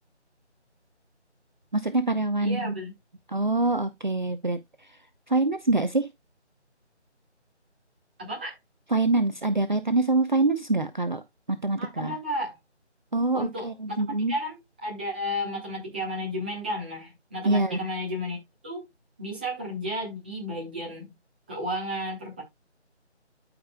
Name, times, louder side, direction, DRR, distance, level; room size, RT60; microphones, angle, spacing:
voice 1, 1.7-2.7 3.3-4.6 5.3-6.1 8.9-11.2 11.5-12.1 13.1-14.3 17.4-17.8, right 2 dB, 40° right, 0.7 m, -25 dB
voice 2, 2.4-2.9 8.2-8.6 11.8-12.6 13.3-18.4 18.6-18.8 19.2-21.1 21.5-22.4, equal, 10° right, 1.4 m, -33 dB
13.5 x 5.1 x 2.3 m
figure-of-eight pair, 165°, 35 cm